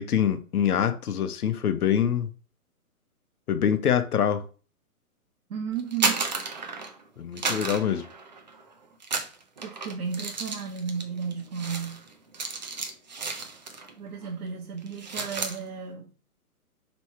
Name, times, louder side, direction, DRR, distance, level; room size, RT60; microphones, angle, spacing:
voice 1, 0.0-2.3 3.5-4.4 7.2-8.0, left 9 dB, 75° left, 0.8 m, -25 dB
voice 2, 5.5-6.3 9.6-12.0 14.0-16.1, right 6 dB, 70° right, 0.9 m, -34 dB
sound 1, 5.8-7.0 7.4-8.6 9.0-13.9 14.2-14.5 14.8-15.6, right 4 dB, 35° right, 0.4 m, -32 dB
3.1 x 3.1 x 4.4 m
hypercardioid pair, 145°, 45 cm